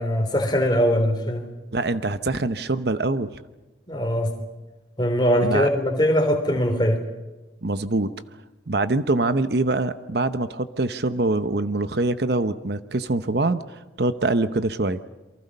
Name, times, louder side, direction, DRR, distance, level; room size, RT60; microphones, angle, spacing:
voice 1, 0.0-1.4 3.9-4.3 5.0-7.0, equal, 25° left, 4 dB, 3.5 m, -21 dB
voice 2, 1.7-3.3 5.4-5.7 7.6-8.1 8.7-15.0, right 2 dB, 55° right, 12 dB, 0.9 m, -24 dB
28.0 x 24.0 x 5.5 m, 1.1 s
head